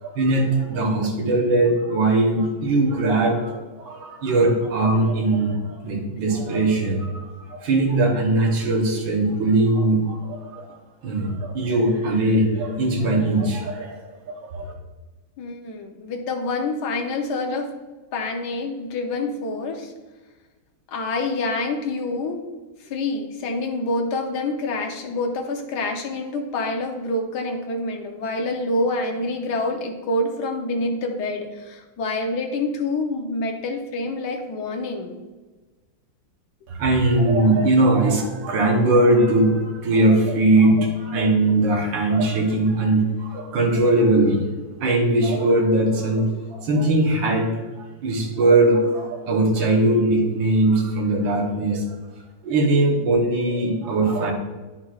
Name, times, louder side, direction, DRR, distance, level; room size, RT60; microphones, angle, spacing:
voice 1, 0.0-10.8 11.0-14.0 14.3-14.7 36.7-44.4 44.8-47.6 48.0-51.8 52.4-54.3, right 2 dB, 75° right, -1 dB, 1.9 m, -20 dB
voice 2, 15.4-17.7 18.1-19.9 20.9-22.4 22.8-35.1, left 2 dB, 65° left, 2 dB, 1.4 m, -27 dB
9.8 x 5.9 x 2.4 m, 1.2 s
omnidirectional pair, 2.1 m